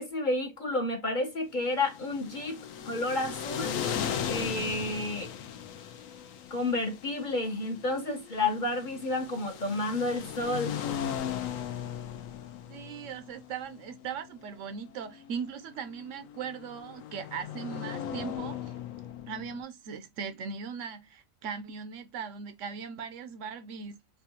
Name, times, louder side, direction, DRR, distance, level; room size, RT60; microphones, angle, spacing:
voice 1, 0.0-3.7 4.3-5.3 6.5-10.8, left 2 dB, 45° left, 0.8 m, -31 dB
sound 1, 1.7-19.6, left 9 dB, 75° left, 1.0 m, -38 dB
voice 2, 12.7-18.7 19.3-24.0, right 6 dB, 70° right, 0.9 m, -39 dB
4.3 x 2.3 x 2.7 m
omnidirectional pair, 1.4 m